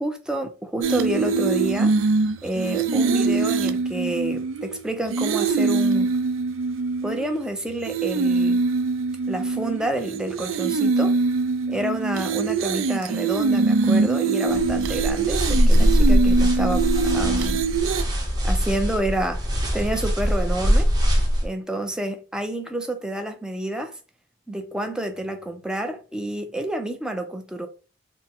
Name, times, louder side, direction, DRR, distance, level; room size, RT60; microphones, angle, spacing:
voice 1, 0.0-2.0 2.4-6.1 7.0-8.6 9.3-11.2 11.7-17.6 18.4-19.5 19.7-20.9 21.4-24.0 24.5-27.7, right 1 dB, 5° right, 0.5 m, -29 dB
sound 1, 0.8-7.5 7.8-18.0, right 4 dB, 70° right, 0.4 m, -23 dB
sound 2, 14.5-21.5, equal, 20° right, 0.8 m, -21 dB
4.3 x 2.1 x 3.6 m
head